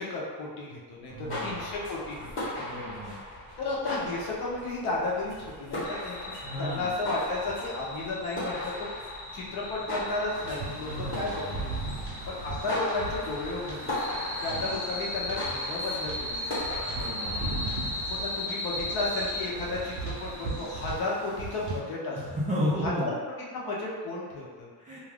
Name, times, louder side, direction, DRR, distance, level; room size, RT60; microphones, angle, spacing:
voice 1, 0.0-2.5 3.6-5.3 5.6-8.9 9.3-11.8 12.3-14.0 14.4-16.5 18.1-22.2 22.8-23.1 23.5-24.7, left 2 dB, 55° left, -4 dB, 0.7 m, -33 dB
sound 1, 1.0-18.4, left 1 dB, 30° left, 0.9 m, -38 dB
voice 2, 1.1-1.7 2.6-3.2 6.4-6.9 10.7-11.6 14.5-14.7 16.8-17.4 22.1-23.1 24.8-25.0, equal, 20° right, -9 dB, 0.4 m, -33 dB
sound 2, 5.8-20.9, left 2 dB, 85° left, 0.8 m, -38 dB
sound 3, 10.3-21.8, right 3 dB, 65° right, 0.7 m, -38 dB
2.4 x 2.3 x 3.4 m, 1.5 s
cardioid pair, 150°, 45 cm